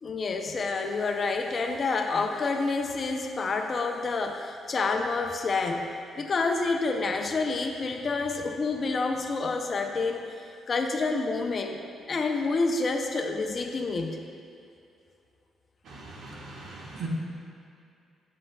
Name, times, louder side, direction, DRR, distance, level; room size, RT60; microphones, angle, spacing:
voice 1, 0.0-5.9 6.2-10.3 10.7-11.8 12.1-14.3, left 3 dB, 45° left, 4 dB, 0.5 m, -28 dB
voice 2, 15.8-17.1, right 4 dB, 70° right, -3 dB, 1.1 m, -40 dB
7.5 x 6.3 x 2.3 m, 2.5 s
cardioid pair, 90°, 0 cm